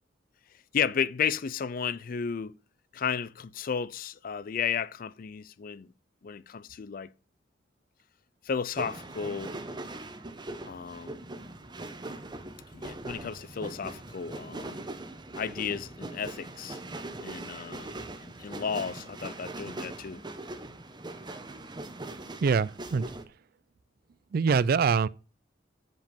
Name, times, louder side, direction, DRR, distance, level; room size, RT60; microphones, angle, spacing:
voice 1, 0.7-2.6 2.9-5.9 6.2-7.1 8.5-9.6 10.7-11.2 12.7-14.9 15.4-16.8 17.2-17.9 18.2-20.2, left 7 dB, 50° left, 0.4 m, -33 dB
sound 1, 8.8-23.3, right 2 dB, 25° right, 0.8 m, -41 dB
voice 2, 22.4-23.1 24.3-25.1, right 5 dB, 55° right, 0.4 m, -24 dB
7.7 x 5.2 x 5.2 m
head